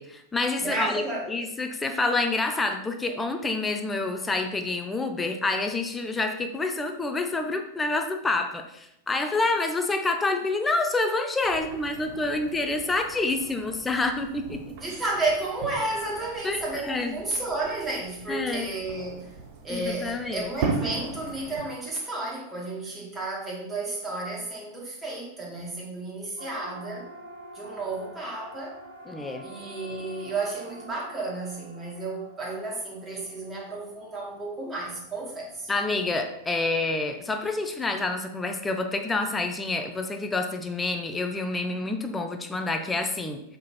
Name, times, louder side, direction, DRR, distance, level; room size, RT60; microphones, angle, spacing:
voice 1, 0.0-14.6 16.4-17.2 18.3-18.7 19.7-20.5 29.1-29.5 35.7-43.4, left 3 dB, 10° left, 6 dB, 0.8 m, -28 dB
voice 2, 0.6-1.3 14.8-19.3 19.6-27.1 27.5-28.8 29.4-35.7, right 2 dB, 15° right, -4 dB, 2.5 m, -32 dB
sound 1, 11.4-21.6, right 4 dB, 50° right, 1.1 m, -38 dB
Siren, 26.4-40.7, right 1 dB, 65° right, 1.7 m, -48 dB
7.4 x 3.9 x 4.4 m, 0.79 s
figure-of-eight pair, 90°, 0 cm